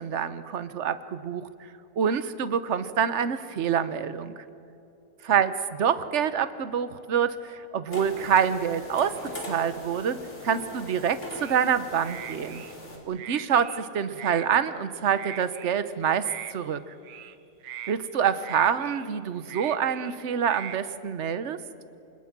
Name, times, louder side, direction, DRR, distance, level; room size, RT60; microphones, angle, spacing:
voice 1, 0.0-1.5 2.0-4.4 5.2-5.5 5.8-9.2 9.5-10.2 10.4-12.6 13.1-16.9 17.9-21.6, right 8 dB, 45° right, 13 dB, 1.1 m, -26 dB
sound 1, 7.9-13.0, left 1 dB, 40° left, 4.0 m, -41 dB
sound 2, 11.4-11.7 12.0-12.7 13.1-13.8 14.1-14.5 15.1-15.8 16.2-16.5 17.0-17.3 17.6-18.0 18.4-19.1 19.4-20.2 20.4-20.8, right 10 dB, 85° right, 1.6 m, -41 dB
28.5 x 26.5 x 6.1 m, 3.0 s
omnidirectional pair, 1.9 m